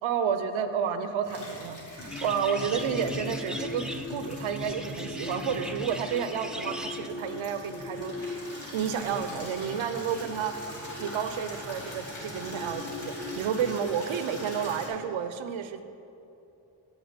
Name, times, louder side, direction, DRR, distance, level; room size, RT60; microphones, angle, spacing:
voice 1, 0.0-8.4 8.7-15.8, right 7 dB, 85° right, 10 dB, 0.6 m, -31 dB
Water tap faucet / Liquid, 1.2-14.9, left 1 dB, 80° left, 2.2 m, -44 dB
sound 1, 2.0-13.7, left 2 dB, 30° left, 1.2 m, -40 dB
sound 2, 2.1-7.1, right 1 dB, ahead, 0.5 m, -40 dB
8.1 x 7.2 x 5.1 m, 2.8 s
cardioid pair, 45°, 46 cm